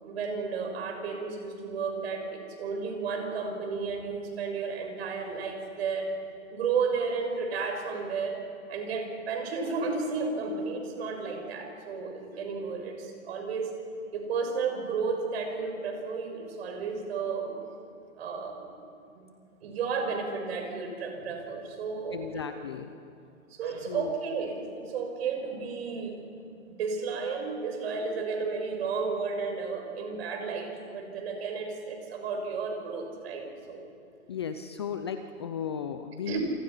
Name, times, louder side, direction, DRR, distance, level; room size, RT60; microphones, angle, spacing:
voice 1, 0.0-6.1 6.5-8.4 8.7-13.7 14.1-17.5 18.2-18.6 19.1-19.3 19.6-22.4 23.5-26.2 26.7-33.9 36.3-36.4, right 5 dB, 45° right, 3 dB, 6.7 m, -33 dB
voice 2, 22.1-22.9 23.9-24.1 34.3-36.4, left 7 dB, 20° left, 8 dB, 0.5 m, -35 dB
28.5 x 28.0 x 5.7 m, 2.5 s
hypercardioid pair, 145°, 42 cm